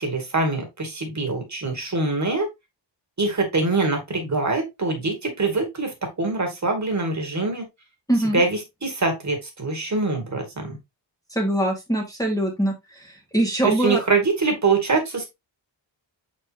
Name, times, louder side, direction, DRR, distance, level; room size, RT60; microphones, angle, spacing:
voice 1, 0.0-2.5 3.2-7.6 8.3-10.8 13.6-15.3, right 3 dB, 35° right, 3 dB, 2.0 m, -24 dB
voice 2, 8.1-8.4 11.3-12.7 13.3-14.0, right 1 dB, 5° left, -1 dB, 1.6 m, -22 dB
7.2 x 4.6 x 2.8 m, 0.20 s
wide cardioid pair, 155°, 47 cm